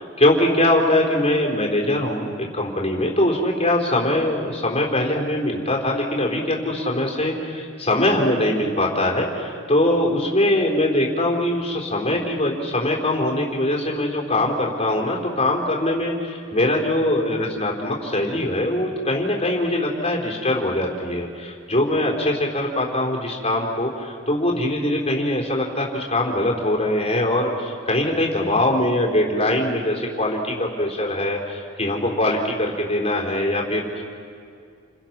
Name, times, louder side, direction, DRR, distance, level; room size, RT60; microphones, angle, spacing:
voice 1, 0.2-34.0, left 1 dB, 30° left, -1 dB, 4.1 m, -22 dB
29.5 x 28.5 x 6.0 m, 2.3 s
head